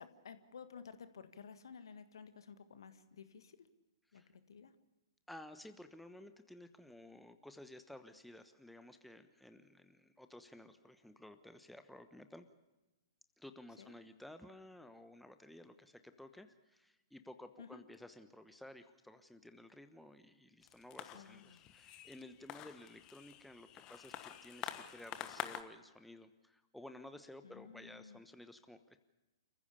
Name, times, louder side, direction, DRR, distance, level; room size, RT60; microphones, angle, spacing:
voice 1, 0.0-3.7 4.1-4.2 4.5-4.7 13.8-13.9 17.6-17.8 21.1-21.6 27.4-28.2, left 6 dB, 65° left, 10 dB, 1.7 m, -53 dB
voice 2, 5.3-12.5 13.4-29.0, left 1 dB, ahead, 8 dB, 1.1 m, -55 dB
sound 1, 20.6-25.6, left 11 dB, 30° left, 1.3 m, -48 dB
28.5 x 15.5 x 7.0 m, 1.1 s
figure-of-eight pair, 115°, 3 cm